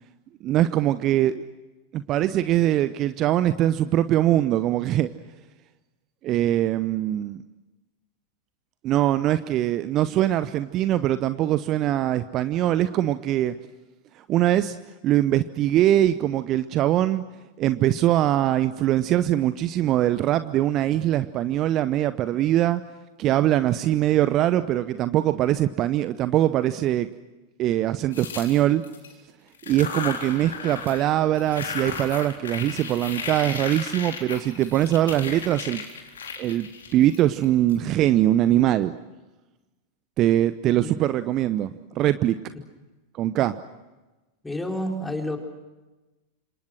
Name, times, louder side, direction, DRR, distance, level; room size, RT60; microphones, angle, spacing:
voice 1, 0.4-1.4 1.9-5.1 6.2-7.4 8.8-13.5 14.3-14.8 15.0-17.2 17.6-22.8 23.2-27.1 27.6-28.8 29.7-35.8 36.4-38.9 40.2-42.4 43.2-43.6, right 13 dB, 35° right, 13 dB, 0.9 m, -22 dB
sound 1, 28.1-29.1 29.5-31.1 31.3-37.7, left 6 dB, 65° left, 4.1 m, -35 dB
voice 2, 44.4-45.4, left 1 dB, 5° left, 3 dB, 4.3 m, -29 dB
29.5 x 27.0 x 6.4 m, 1.1 s
figure-of-eight pair, 90°, 0 cm